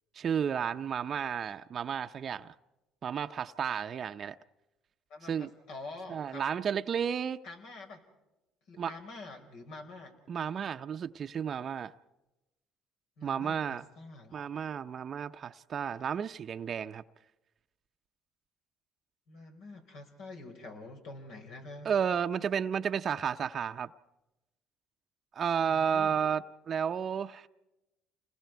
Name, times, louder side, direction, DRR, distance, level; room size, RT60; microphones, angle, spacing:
voice 1, 0.1-2.5 3.0-4.4 5.2-5.5 6.1-7.4 8.8-8.9 10.3-11.9 13.2-13.8 14.3-17.0 21.8-23.9 25.3-27.5, right 7 dB, 45° right, 0.7 m, -32 dB
voice 2, 5.1-6.4 7.4-8.0 8.7-10.1 13.2-14.5 19.3-21.9 25.6-26.2, left 3 dB, 70° left, 4.8 m, -46 dB
29.5 x 21.0 x 4.6 m
supercardioid pair, 85°, 0 cm